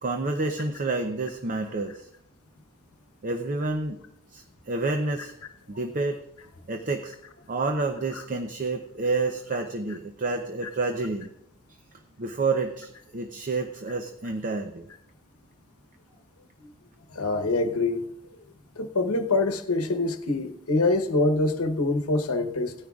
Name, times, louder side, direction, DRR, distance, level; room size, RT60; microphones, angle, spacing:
voice 1, 0.0-2.1 3.2-4.0 4.3-5.3 5.7-6.2 6.7-7.1 7.5-11.3 12.2-14.8, right 3 dB, 40° right, 0.6 m, -29 dB
voice 2, 17.1-18.0 18.8-22.7, left 2 dB, 75° left, 1.0 m, -25 dB
17.5 x 10.0 x 2.4 m
head